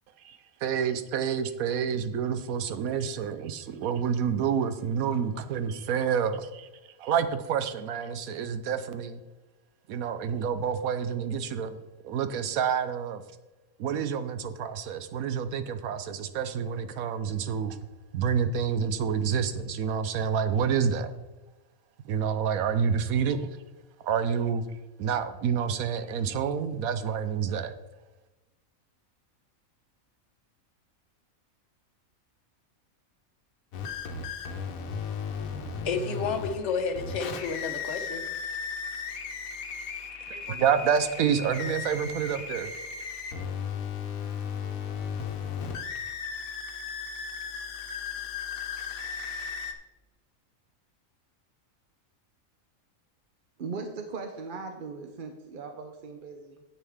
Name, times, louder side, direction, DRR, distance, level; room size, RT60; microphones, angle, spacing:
voice 1, 0.2-6.7 7.0-9.2 9.9-13.2 13.8-17.8 18.1-21.1 22.0-23.6 24.0-24.7 25.0-27.7 40.3-42.8, right 7 dB, 85° right, 1.2 m, -28 dB
sound 1, 33.7-49.7, left 6 dB, 80° left, 1.3 m, -36 dB
voice 2, 35.5-38.3, left 5 dB, 60° left, 1.2 m, -31 dB
voice 3, 53.6-56.6, right 4 dB, 50° right, 0.8 m, -39 dB
9.9 x 8.3 x 3.5 m
omnidirectional pair, 1.4 m